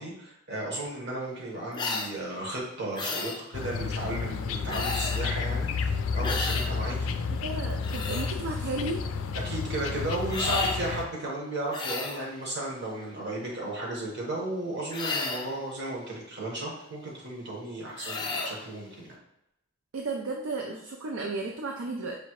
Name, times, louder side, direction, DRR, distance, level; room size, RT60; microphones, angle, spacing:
voice 1, 0.0-7.1 9.4-19.1, right 1 dB, 60° right, -3 dB, 1.3 m, -34 dB
sound 1, 1.7-2.1 2.9-3.4 4.7-5.3 6.2-6.7 7.6-8.3 10.3-10.8 11.7-12.2 14.9-15.5 18.0-18.6, left 3 dB, 25° left, 0.5 m, -32 dB
sound 2, 3.5-11.1, left 5 dB, 80° left, 0.3 m, -31 dB
voice 2, 7.3-9.0 19.9-22.2, right 3 dB, 75° right, 1 dB, 0.4 m, -33 dB
5.1 x 2.8 x 3.0 m, 0.85 s
head